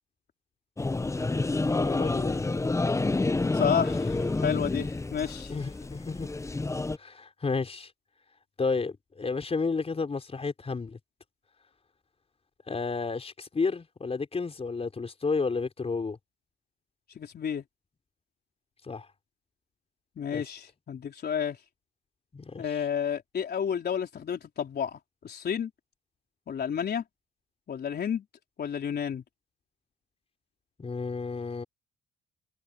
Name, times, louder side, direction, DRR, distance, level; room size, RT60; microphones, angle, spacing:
sound 1, 0.8-7.0, left 3 dB, 15° left, 0.8 m, -29 dB
voice 1, 1.7-2.5 5.5-6.3 7.0-7.9 8.6-11.0 12.7-16.2 18.8-19.1 20.3-20.4 22.3-22.6 30.8-31.6, left 4 dB, 30° left, 4.7 m, -31 dB
voice 2, 3.5-5.6 17.2-17.6 20.2-21.6 22.6-25.7 26.5-27.0 27.7-28.2 28.6-29.2, left 8 dB, 55° left, 4.1 m, -31 dB
cardioid pair, 90°, 20 cm